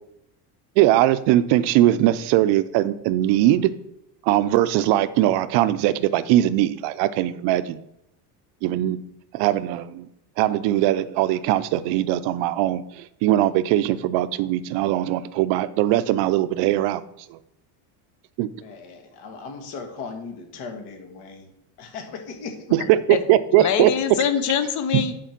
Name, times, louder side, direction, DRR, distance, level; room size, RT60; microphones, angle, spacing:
voice 1, 0.8-3.7 4.2-7.8 8.6-9.0 9.3-10.1 10.4-17.0 17.3-17.4 18.4-18.5 22.7-23.9 24.9-25.0, right 13 dB, 60° right, 13 dB, 0.6 m, -20 dB
voice 2, 18.5-21.5 21.8-22.7, left 4 dB, 55° left, 4 dB, 1.7 m, -37 dB
voice 3, 22.8-23.2 23.5-25.1, left 7 dB, 40° left, 10 dB, 0.9 m, -24 dB
9.9 x 4.6 x 5.9 m, 0.79 s
cardioid pair, 170°, 48 cm